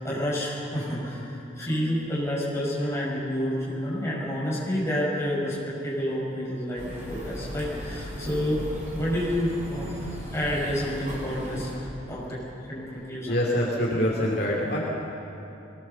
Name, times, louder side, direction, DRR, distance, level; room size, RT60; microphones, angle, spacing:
voice 1, 0.0-9.9 10.3-13.4, equal, 15° left, -6 dB, 6.0 m, -29 dB
sound 1, 6.8-11.7, equal, 40° right, 4.4 m, -37 dB
voice 2, 13.2-14.8, equal, 55° left, -3 dB, 2.5 m, -25 dB
22.5 x 17.5 x 6.9 m, 2.9 s
head